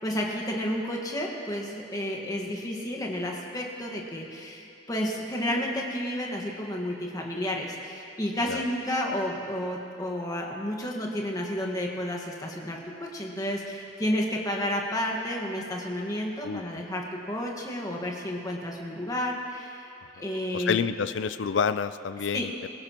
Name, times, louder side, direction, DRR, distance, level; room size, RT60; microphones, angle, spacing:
voice 1, 0.0-12.8 13.1-19.9 20.2-20.8 22.3-22.4, left 1 dB, 20° left, -1 dB, 1.5 m, -31 dB
voice 2, 16.4-16.8 20.5-22.7, left 6 dB, 75° left, 13 dB, 0.4 m, -29 dB
21.5 x 16.0 x 3.0 m, 2.7 s
head